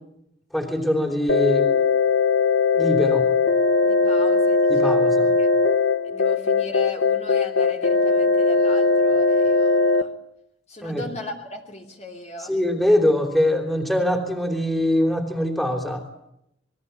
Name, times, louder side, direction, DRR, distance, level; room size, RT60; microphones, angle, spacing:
voice 1, 0.5-1.7 2.7-3.3 4.7-5.3 10.8-11.0 12.5-16.0, left 1 dB, ahead, 4 dB, 3.3 m, -22 dB
sound 1, 1.3-10.0, left 4 dB, 65° left, 1.0 m, -19 dB
voice 2, 3.8-5.1 5.4-5.5 6.0-10.1 10.7-12.6, left 1 dB, 35° left, 2 dB, 2.7 m, -38 dB
27.0 x 21.5 x 8.2 m, 0.80 s
head